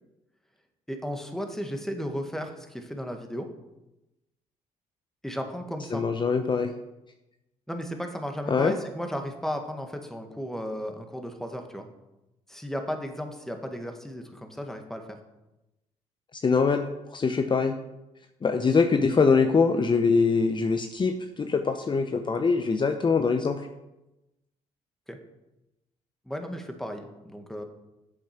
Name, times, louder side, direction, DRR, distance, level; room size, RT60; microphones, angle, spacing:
voice 1, 0.9-3.5 5.2-6.0 7.7-11.9 12.5-15.2 25.1-25.2 26.2-27.6, equal, 5° left, 5 dB, 1.8 m, -34 dB
voice 2, 5.9-6.7 8.5-8.7 16.4-17.8 18.4-23.7, left 5 dB, 35° left, 6 dB, 0.8 m, -23 dB
8.4 x 7.2 x 5.9 m, 0.95 s
supercardioid pair, 65°, 14 cm